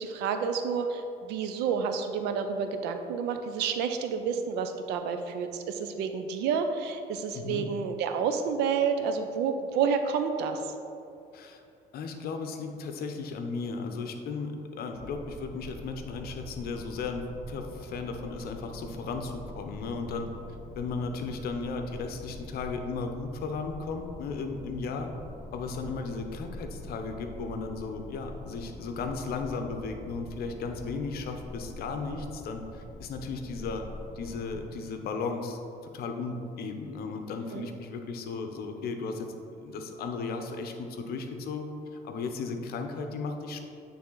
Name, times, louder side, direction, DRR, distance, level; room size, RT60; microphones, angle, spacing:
voice 1, 0.0-10.7 37.5-37.7, right 6 dB, 85° right, 7 dB, 0.5 m, -29 dB
voice 2, 7.3-7.7 11.3-11.6 11.9-20.3 20.8-25.1 25.5-33.9 34.1-39.3 39.6-43.6, left 4 dB, 65° left, 5 dB, 0.7 m, -35 dB
sound 1, 14.9-34.7, left 1 dB, 20° left, 0.9 m, -45 dB
8.7 x 3.4 x 3.9 m, 2.6 s
cardioid pair, 110°, 17 cm